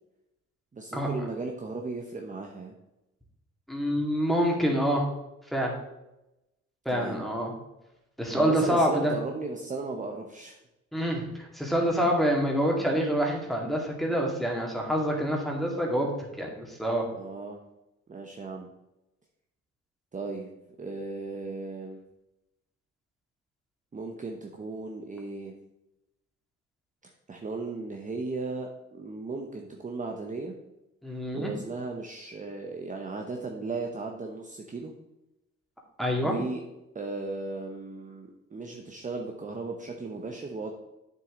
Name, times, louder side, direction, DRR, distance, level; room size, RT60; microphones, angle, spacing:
voice 1, 0.7-2.7 6.9-7.2 8.3-10.6 17.1-17.6 18.1-18.7 20.1-20.5 20.8-22.0 23.9-25.5 27.0-30.5 31.3-34.9 36.2-36.6 36.9-40.7, right 3 dB, 25° right, 2 dB, 0.9 m, -36 dB
voice 2, 3.7-5.0 5.5-5.7 6.9-7.5 8.2-9.1 10.9-16.1 16.4-17.1 31.0-31.5 36.0-36.4, equal, ahead, -1 dB, 2.3 m, -26 dB
8.3 x 6.7 x 3.9 m, 0.94 s
cardioid pair, 90°, 30 cm